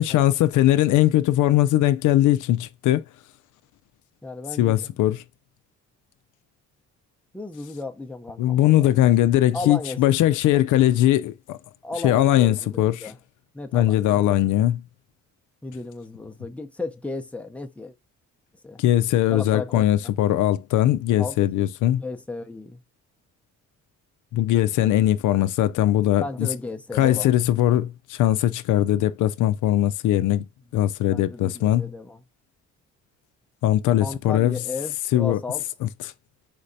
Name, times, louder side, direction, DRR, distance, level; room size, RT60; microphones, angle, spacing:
voice 1, 0.0-3.0 4.6-5.2 8.4-11.6 12.0-13.1 13.7-14.8 18.8-22.0 24.3-26.5 26.9-30.4 30.7-31.9 33.6-34.5 35.1-35.4 35.8-35.9, left 13 dB, 80° left, 0.5 m, -20 dB
voice 2, 4.2-4.9 7.3-8.9 9.5-10.1 11.8-13.2 13.5-14.2 15.6-17.9 18.6-18.8 19.3-19.8 21.2-21.4 21.9-22.8 26.2-27.3 31.0-32.2 34.0-35.6, left 3 dB, 5° left, 0.6 m, -34 dB
4.9 x 3.2 x 2.6 m
cardioid pair, 90°, 30 cm